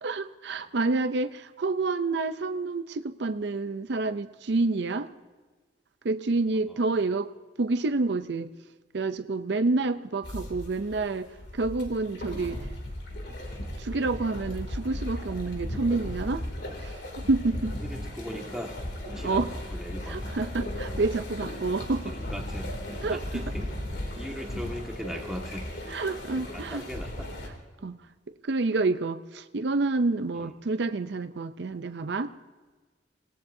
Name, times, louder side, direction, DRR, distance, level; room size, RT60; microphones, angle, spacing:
voice 1, 0.0-5.1 6.0-7.3 7.6-8.5 8.9-12.6 13.8-16.4 16.8-17.8 19.2-19.5 20.1-22.1 23.0-23.4 25.9-26.8 27.8-28.0 28.4-32.3, right 3 dB, 60° right, 11 dB, 0.5 m, -28 dB
sound 1, 10.2-27.5, left 1 dB, 60° left, 2.7 m, -36 dB
voice 2, 17.8-18.8 19.1-20.2 22.0-22.7 23.1-23.7 24.1-26.0 26.5-27.3 27.8-27.9 30.3-30.5, equal, 5° right, 0 dB, 1.6 m, -39 dB
26.5 x 18.5 x 2.7 m, 1.4 s
head